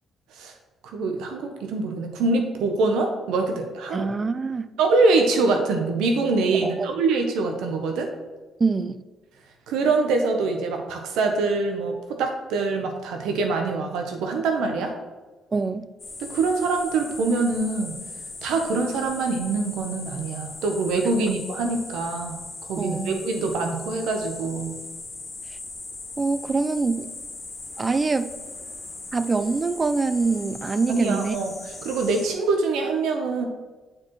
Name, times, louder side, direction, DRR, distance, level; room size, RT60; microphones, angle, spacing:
voice 1, 0.8-4.1 4.8-8.1 9.7-14.9 16.2-18.0 18.4-22.4 22.7-24.8 30.9-33.5, right 3 dB, 90° right, 4 dB, 0.8 m, -24 dB
voice 2, 3.9-4.7 6.6-6.9 8.6-9.0 15.5-15.9 21.2-21.3 22.8-23.2 26.2-27.1 27.8-28.3 29.1-31.4, right 4 dB, 30° right, 13 dB, 0.3 m, -24 dB
sound 1, 16.0-32.3, left 3 dB, 30° left, 1.7 m, -39 dB
8.6 x 4.7 x 3.1 m, 1.2 s
cardioid pair, 90°, 0 cm